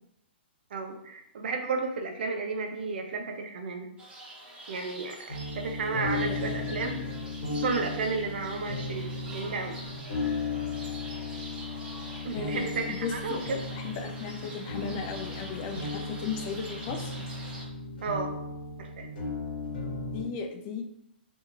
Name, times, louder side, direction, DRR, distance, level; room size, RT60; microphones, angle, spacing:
voice 1, 0.7-3.9 4.7-7.0 7.5-9.8 12.2-12.8 13.1-13.6 18.0-18.3 18.8-19.1, right 4 dB, 65° right, 4 dB, 0.5 m, -33 dB
sound 1, 4.0-17.6, right 1 dB, 15° right, 0.8 m, -45 dB
sound 2, 5.3-20.2, left 3 dB, 65° left, 1.1 m, -36 dB
voice 2, 6.2-6.8 12.3-13.4 13.7-17.2 20.1-20.8, left 5 dB, 35° left, 6 dB, 0.4 m, -36 dB
2.8 x 2.6 x 2.4 m, 0.76 s
hypercardioid pair, 130°, 6 cm